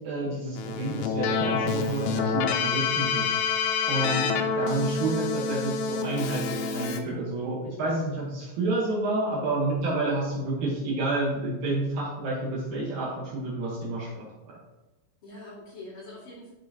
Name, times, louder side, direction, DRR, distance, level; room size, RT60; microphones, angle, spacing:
voice 1, 0.0-3.3 3.9-14.6, right 2 dB, 75° right, -4 dB, 1.7 m, -29 dB
Keyboard (musical), 0.6-7.0, left 5 dB, 85° left, 2.5 m, -27 dB
voice 2, 3.9-5.1 15.2-16.5, left 2 dB, 40° left, -7 dB, 2.4 m, -44 dB
13.5 x 5.4 x 2.9 m, 1.1 s
omnidirectional pair, 5.5 m